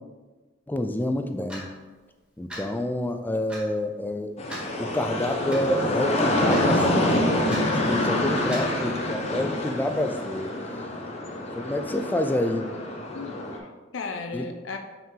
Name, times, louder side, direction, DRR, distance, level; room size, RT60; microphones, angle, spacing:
voice 1, 0.7-1.7 2.4-4.3 4.8-10.5 11.5-12.7 14.3-14.5, left 1 dB, 10° left, 7 dB, 0.3 m, -28 dB
Clock, 1.5-1.7 2.5-2.7 3.5-3.6 4.5-4.7 5.5-5.6 6.5-6.7 7.5-7.6 8.5-8.7, equal, 5° right, 1.6 m, -37 dB
sound 1, 4.4-13.6, left 1 dB, 35° left, 0.8 m, -26 dB
voice 2, 7.9-8.6 13.1-14.8, left 4 dB, 85° left, 6 dB, 0.5 m, -36 dB
5.6 x 4.6 x 3.7 m, 1.3 s
head